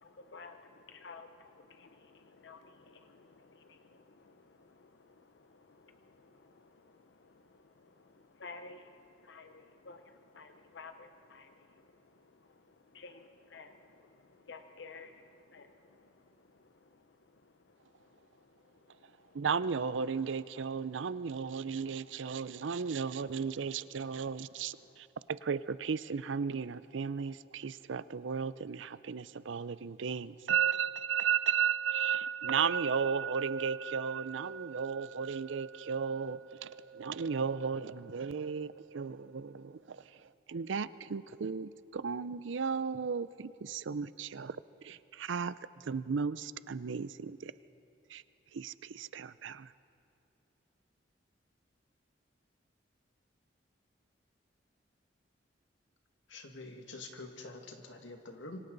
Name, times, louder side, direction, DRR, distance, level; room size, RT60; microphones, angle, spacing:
voice 1, 0.0-7.0 7.2-7.3 7.8-8.1 8.4-10.0 10.3-11.8 12.9-13.8 14.5-15.7, left 4 dB, 70° left, 8 dB, 0.7 m, -53 dB
voice 2, 19.3-24.8 25.3-40.0 40.5-44.6 44.8-45.5 45.9-47.5 48.1-48.2 48.5-49.7, right 6 dB, 80° right, 16 dB, 0.5 m, -34 dB
voice 3, 56.3-58.6, left 2 dB, 85° left, 4 dB, 2.0 m, -46 dB
26.5 x 24.5 x 4.0 m, 2.7 s
head